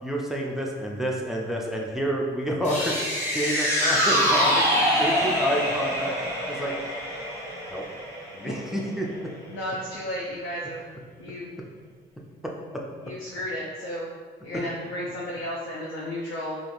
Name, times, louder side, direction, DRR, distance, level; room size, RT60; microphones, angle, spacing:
voice 1, 0.0-3.0 3.3-4.7 4.9-6.1 6.5-6.7 7.7-7.8 8.3-9.3 12.4-12.5 14.5-14.6, equal, ahead, -1 dB, 0.4 m, -29 dB
sound 1, 2.6-6.1, equal, 35° left, 0.9 m, -37 dB
sound 2, 2.8-9.2 9.6-9.7, equal, 15° left, 1.2 m, -25 dB
voice 2, 9.5-10.8 11.2-11.5 13.0-14.1 14.4-16.6, left 1 dB, 75° left, -4 dB, 0.5 m, -33 dB
3.1 x 2.4 x 2.5 m, 1.5 s
cardioid pair, 90°, 20 cm